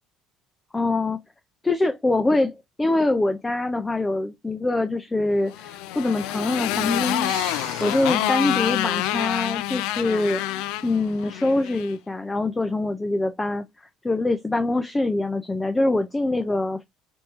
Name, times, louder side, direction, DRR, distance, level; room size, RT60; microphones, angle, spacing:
voice 1, 0.7-1.2 1.6-10.4 10.8-16.8, left 2 dB, 10° left, 0.3 m, -24 dB
Motorcycle, 5.5-11.9, left 14 dB, 85° left, 0.4 m, -27 dB
sound 1, 7.2-9.5, right 10 dB, 75° right, 0.7 m, -42 dB
3.4 x 3.0 x 2.8 m
cardioid pair, 170°, 0 cm